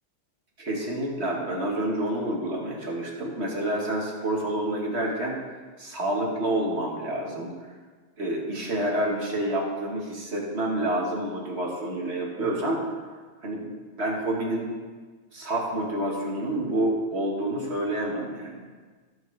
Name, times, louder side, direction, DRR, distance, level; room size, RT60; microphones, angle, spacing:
voice 1, 0.6-5.4 5.8-7.5 8.2-12.8 13.4-14.7 15.3-18.7, right 1 dB, 35° right, -2 dB, 1.5 m, -28 dB
14.5 x 5.8 x 3.3 m, 1.4 s
omnidirectional pair, 2.1 m